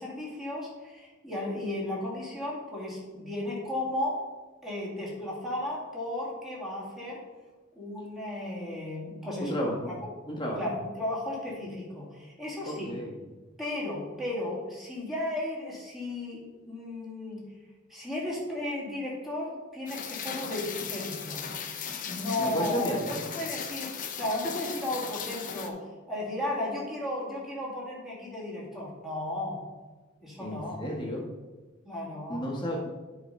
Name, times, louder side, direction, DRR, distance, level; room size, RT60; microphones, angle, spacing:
voice 1, 0.0-4.2 4.6-7.2 7.7-10.0 10.6-13.0 13.6-17.5 17.9-21.5 22.0-29.6 30.2-30.8 31.9-32.5, left 1 dB, ahead, -6 dB, 2.4 m, -34 dB
voice 2, 9.4-9.9 10.3-10.6 12.7-13.1 22.4-23.2 30.4-31.2 32.3-32.9, equal, 20° left, -2 dB, 1.6 m, -32 dB
Rain, 19.9-25.7, left 7 dB, 40° left, 0.7 m, -37 dB
9.0 x 4.1 x 5.5 m, 1.3 s
head